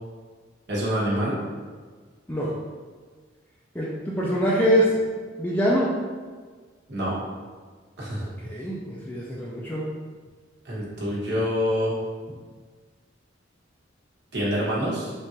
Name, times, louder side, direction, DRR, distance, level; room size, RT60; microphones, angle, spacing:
voice 1, 0.7-1.4 6.9-7.2 8.0-8.3 10.6-12.0 14.3-15.1, equal, 60° right, -5 dB, 1.1 m, -26 dB
voice 2, 3.7-4.9 5.4-5.9 8.2-9.8, equal, 10° left, -6 dB, 0.4 m, -24 dB
3.6 x 2.5 x 4.2 m, 1.5 s
head